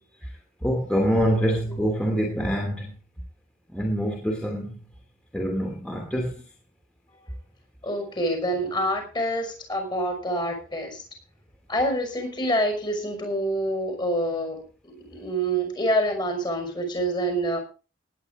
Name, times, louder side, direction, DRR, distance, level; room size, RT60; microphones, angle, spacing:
voice 1, 0.6-2.9 3.7-4.8 5.3-6.3, equal, 5° left, 2.8 m, -25 dB
voice 2, 7.8-11.0 11.7-17.6, right 1 dB, 25° left, 5.9 m, -27 dB
18.5 x 10.0 x 3.8 m
head